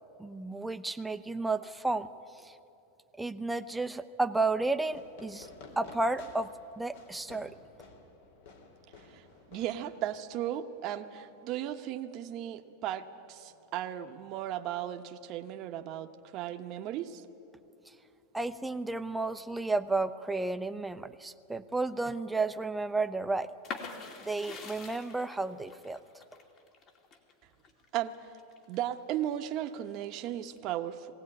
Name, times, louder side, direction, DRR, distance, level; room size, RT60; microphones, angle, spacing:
voice 1, 0.2-2.1 2.4-2.5 3.2-5.5 5.8-6.5 6.8-7.5 18.3-23.5 24.2-26.0, right 3 dB, 5° right, 10 dB, 0.7 m, -32 dB
Fireworks, 4.9-10.4, left 3 dB, 70° left, 3.4 m, -53 dB
voice 2, 9.0-17.3 27.9-28.4 28.7-31.1, right 11 dB, 45° right, 6 dB, 1.0 m, -36 dB
sound 1, 23.6-29.3 29.7-30.6, left 4 dB, 40° left, 2.5 m, -45 dB
20.5 x 16.5 x 9.9 m, 2.8 s
supercardioid pair, 130°, 0 cm